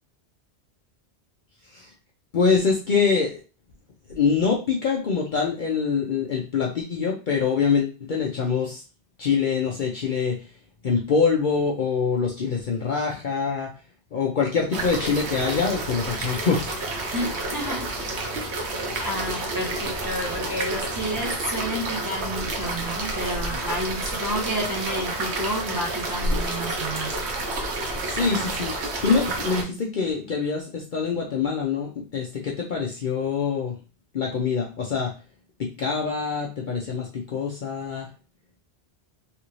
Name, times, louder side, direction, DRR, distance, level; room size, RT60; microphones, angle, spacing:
voice 1, 2.3-3.4 4.1-8.8 9.2-10.5 10.8-13.7 14.1-16.7 27.9-33.8 34.1-35.1 35.6-38.1, left 5 dB, 55° left, -1 dB, 0.7 m, -25 dB
sound 1, 14.7-29.6, right 2 dB, 75° right, 1.1 m, -29 dB
voice 2, 17.1-17.9 19.0-27.1, equal, 20° right, -4 dB, 1.2 m, -30 dB
3.3 x 2.6 x 3.0 m, 0.33 s
omnidirectional pair, 1.1 m